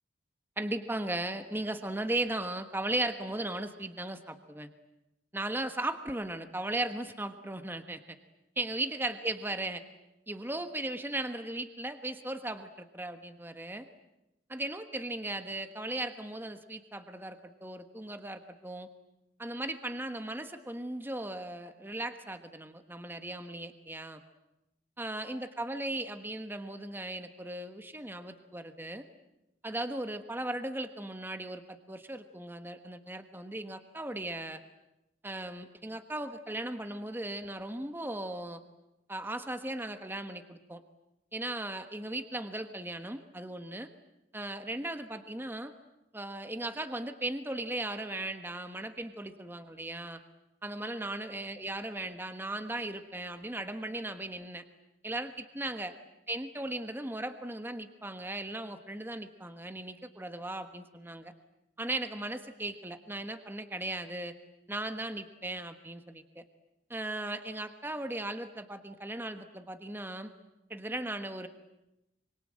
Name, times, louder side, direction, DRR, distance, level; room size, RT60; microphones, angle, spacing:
voice 1, 0.6-4.7 5.3-8.2 8.6-9.8 10.3-13.9 14.5-18.9 19.4-24.2 25.0-29.0 29.6-34.6 35.2-38.6 39.1-40.8 41.3-43.9 44.3-45.7 46.1-50.2 50.6-54.6 55.0-55.9 56.3-61.3 61.8-64.3 64.7-66.4 66.9-70.3 70.7-71.5, right 1 dB, 10° right, 8 dB, 1.3 m, -37 dB
25.0 x 25.0 x 8.8 m, 0.91 s
head